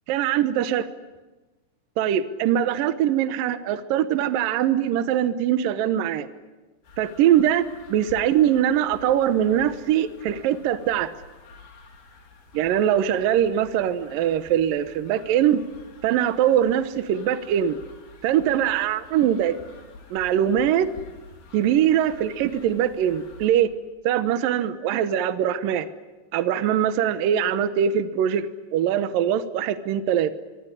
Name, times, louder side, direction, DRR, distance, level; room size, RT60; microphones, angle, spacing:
voice 1, 0.1-0.9 2.0-6.3 7.0-11.1 12.5-15.6 16.0-17.8 18.2-19.6 20.1-20.9 21.5-23.7 24.0-25.9 26.3-30.3, right 10 dB, 70° right, 11 dB, 2.6 m, -22 dB
sound 1, 6.8-23.5, left 4 dB, 80° left, 5.7 m, -48 dB
24.5 x 24.5 x 9.9 m, 1.2 s
omnidirectional pair, 4.4 m